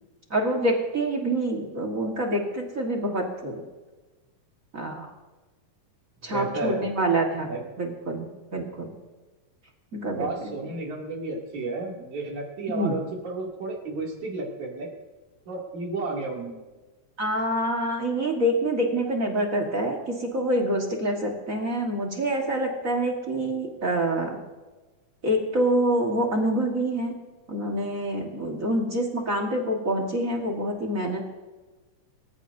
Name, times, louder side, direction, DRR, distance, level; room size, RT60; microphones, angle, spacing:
voice 1, 0.3-3.6 4.7-5.1 6.2-7.5 7.8-8.9 9.9-10.3 12.7-12.9 17.2-24.4 25.2-27.1 27.5-31.2, right 1 dB, 40° right, 0 dB, 1.2 m, -26 dB
voice 2, 6.3-6.9 7.4-7.6 10.0-14.9 15.5-16.6, right 3 dB, 60° right, -2 dB, 4.0 m, -32 dB
24.0 x 14.5 x 2.7 m, 1.2 s
omnidirectional pair, 3.8 m